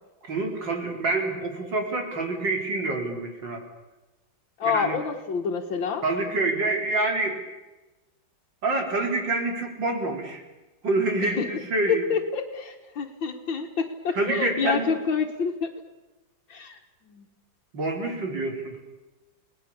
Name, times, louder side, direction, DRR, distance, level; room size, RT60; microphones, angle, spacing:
voice 1, 0.3-3.6 4.6-4.9 6.0-7.4 8.6-10.4 10.8-12.0 14.2-14.9 17.7-18.8, right 2 dB, 70° right, 2 dB, 4.6 m, -27 dB
voice 2, 4.6-6.0 11.2-11.5 11.9-15.7 16.5-17.3, left 6 dB, 85° left, -2 dB, 2.3 m, -28 dB
30.0 x 19.5 x 7.0 m, 1.1 s
omnidirectional pair, 2.1 m